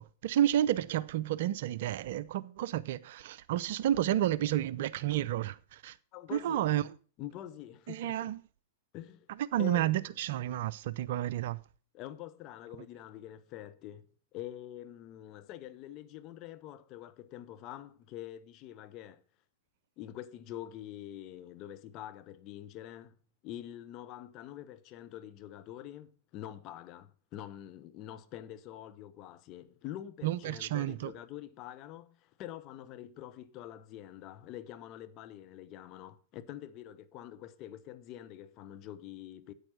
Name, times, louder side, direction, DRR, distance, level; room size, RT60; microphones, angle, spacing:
voice 1, 0.0-5.9 6.3-6.8 7.9-8.4 9.5-11.6 30.2-31.1, right 12 dB, 55° right, 0.5 m, -31 dB
voice 2, 6.1-6.7 7.2-8.3 8.9-9.3 9.6-10.1 11.9-14.1 14.3-19.2 20.0-23.2 23.4-39.5, left 12 dB, 40° left, 1.0 m, -46 dB
9.0 x 8.8 x 5.7 m
figure-of-eight pair, 100°, 0 cm